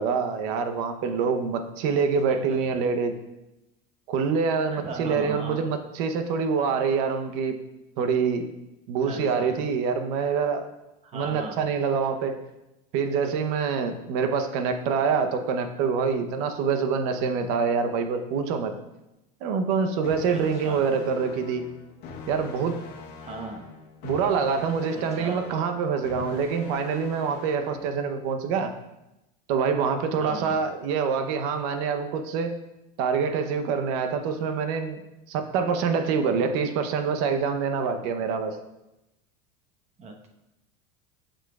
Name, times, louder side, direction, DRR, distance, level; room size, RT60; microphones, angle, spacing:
voice 1, 0.0-3.2 4.1-7.6 8.0-8.5 8.9-10.7 11.1-12.4 12.9-18.7 19.4-21.6 22.3-22.8 24.0-28.7 29.5-32.5 33.0-35.0 35.3-38.6, right 5 dB, 65° right, 7 dB, 0.8 m, -26 dB
voice 2, 2.3-2.7 4.7-5.7 9.0-9.6 11.0-11.6 20.3-20.8 23.2-23.7 24.9-25.4 30.2-30.6 40.0-40.3, right 3 dB, 35° right, 2 dB, 1.1 m, -38 dB
sound 1, 20.0-28.0, left 4 dB, 55° left, 1.2 m, -42 dB
7.7 x 6.3 x 2.4 m, 0.93 s
supercardioid pair, 115°, 20 cm